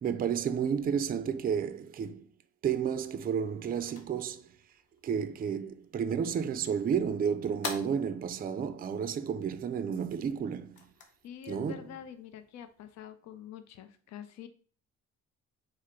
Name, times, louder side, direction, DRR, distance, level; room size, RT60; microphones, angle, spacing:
voice 1, 0.0-2.3 2.6-4.5 5.0-10.8 11.5-11.8, right 7 dB, 30° right, 0.4 m, -31 dB
sound 1, 3.2-13.0, left 4 dB, 85° left, 0.9 m, -49 dB
voice 2, 11.2-14.5, left 9 dB, 65° left, 0.5 m, -46 dB
4.7 x 2.1 x 4.4 m
cardioid pair, 90°, 30 cm